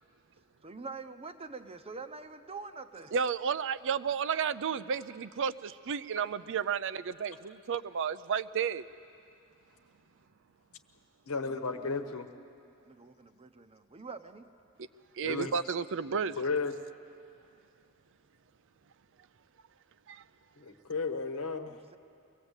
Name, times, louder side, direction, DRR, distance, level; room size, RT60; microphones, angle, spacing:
voice 1, 0.6-3.1 11.5-12.1 12.9-14.5 21.6-22.0, right 4 dB, 25° right, 9 dB, 0.8 m, -45 dB
voice 2, 3.1-8.8 15.2-16.4 20.1-20.2, right 6 dB, 60° right, 14 dB, 0.5 m, -32 dB
voice 3, 11.3-12.3 15.2-15.5 16.4-16.7 20.6-21.7, left 4 dB, 70° left, 8 dB, 1.2 m, -33 dB
23.5 x 18.0 x 8.1 m, 2.6 s
head